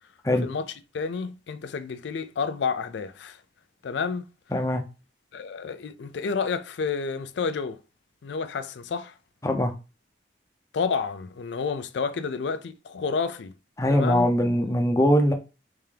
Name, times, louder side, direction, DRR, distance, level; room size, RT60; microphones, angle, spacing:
voice 1, 0.4-3.4 3.8-4.3 5.3-7.8 8.2-9.1 10.7-13.5 13.9-14.3, left 5 dB, 80° left, 0.4 m, -30 dB
voice 2, 4.5-4.8 9.4-9.7 13.8-15.3, equal, 15° left, 0.5 m, -21 dB
3.5 x 2.8 x 3.3 m
head